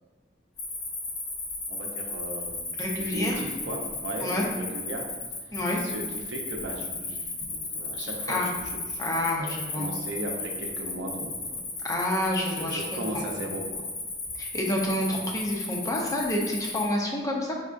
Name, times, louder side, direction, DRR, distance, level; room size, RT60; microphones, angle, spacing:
Cricket, 0.6-16.9, left 3 dB, 55° left, 1.2 m, -35 dB
voice 1, 1.7-2.6 2.9-5.1 5.8-9.0 9.4-9.5 9.7-11.7 12.4-13.8, right 1 dB, 70° right, 0 dB, 0.7 m, -36 dB
voice 2, 2.8-3.4 4.2-4.5 5.5-5.8 8.3-8.5 9.0-9.8 11.8-12.8 13.1-13.2 14.4-17.5, left 1 dB, 15° left, -1 dB, 0.5 m, -28 dB
4.8 x 3.5 x 2.5 m, 1.4 s
head